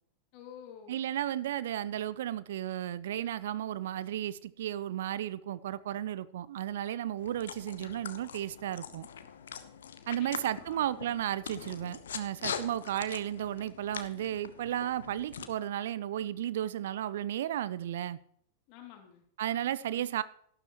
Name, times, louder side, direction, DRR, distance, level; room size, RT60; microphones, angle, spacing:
voice 1, 0.3-1.1 10.1-10.9 18.7-19.3 19.9-20.1, left 9 dB, 45° left, 2.5 m, -51 dB
voice 2, 0.9-9.1 10.1-18.2 19.4-20.2, right 11 dB, 60° right, 0.5 m, -34 dB
sound 1, 7.2-15.5, left 8 dB, 65° left, 1.0 m, -43 dB
12.5 x 12.0 x 3.1 m
figure-of-eight pair, 90°, 0 cm